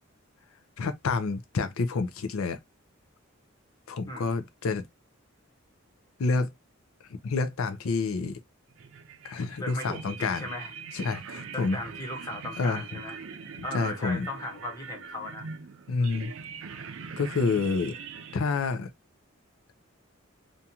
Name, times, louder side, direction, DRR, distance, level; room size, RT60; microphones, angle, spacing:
voice 1, 0.8-2.6 3.9-4.8 6.2-6.5 7.2-8.4 9.2-10.5 10.9-11.8 12.6-12.8 13.7-14.3 15.9-16.3 17.2-18.0 18.3-18.9, left 4 dB, 90° left, 0.5 m, -28 dB
sound 1, 8.7-18.4, right 6 dB, 75° right, 0.4 m, -42 dB
voice 2, 9.6-10.7 11.5-13.2 13.6-15.5 16.0-16.2, left 1 dB, 15° left, 0.8 m, -37 dB
2.6 x 2.3 x 2.7 m
head